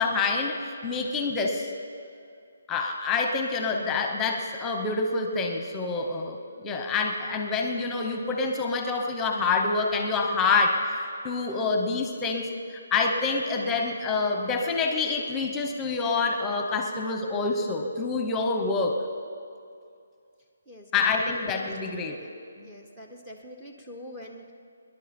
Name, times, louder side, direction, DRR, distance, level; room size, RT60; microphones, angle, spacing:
voice 1, 0.0-1.7 2.7-6.4 6.6-19.0 20.9-22.3 22.6-22.7, left 4 dB, 10° left, 4 dB, 1.0 m, -27 dB
voice 2, 22.6-24.5, left 1 dB, 10° right, 1 dB, 0.9 m, -44 dB
27.0 x 11.0 x 4.4 m, 2.4 s
hypercardioid pair, 165°, 0 cm